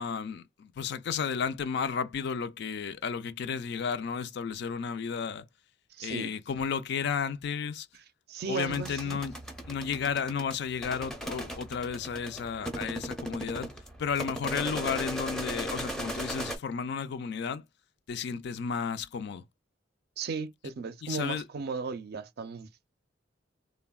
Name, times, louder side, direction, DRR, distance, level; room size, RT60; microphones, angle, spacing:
voice 1, 0.0-5.4 6.0-7.9 8.5-13.7 14.0-17.6 18.1-19.4 21.0-21.4, left 6 dB, 60° left, 0.3 m, -33 dB
voice 2, 6.0-6.3 8.3-9.2 20.2-22.7, right 5 dB, 55° right, 0.4 m, -36 dB
sound 1, 8.7-16.6, right 1 dB, 5° left, 0.5 m, -38 dB
3.3 x 2.1 x 2.3 m
head